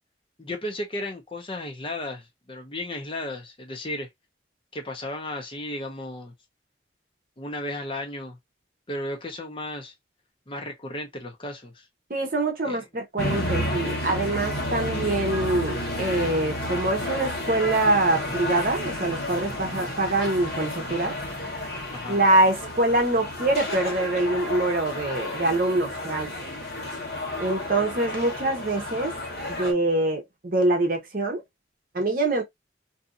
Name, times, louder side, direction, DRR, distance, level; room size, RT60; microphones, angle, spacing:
voice 1, 0.4-4.1 4.7-6.3 7.4-8.4 8.9-9.9 10.5-11.9 12.6-12.8 21.9-22.2, left 1 dB, 30° left, 0.7 m, -34 dB
voice 2, 12.1-21.1 22.1-26.3 27.4-29.1 29.6-31.4 31.9-32.4, right 2 dB, 50° right, 0.8 m, -24 dB
sound 1, 13.2-29.7, left 1 dB, 55° left, 1.2 m, -31 dB
2.7 x 2.6 x 2.5 m
head